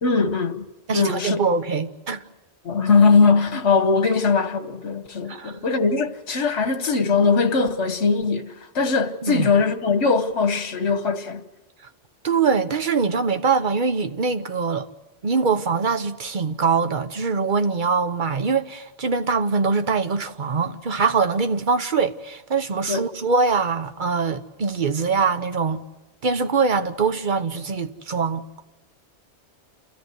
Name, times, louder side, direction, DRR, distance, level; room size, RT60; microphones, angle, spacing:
voice 1, 0.0-0.6 0.9-1.5 2.6-11.4 22.9-23.0, left 4 dB, 70° left, 1.5 m, -20 dB
voice 2, 0.9-2.2 5.3-5.6 9.2-9.5 12.2-14.9 15.2-25.8 26.2-28.4, right 5 dB, 45° right, 1.1 m, -23 dB
29.0 x 14.0 x 9.3 m
omnidirectional pair, 1.2 m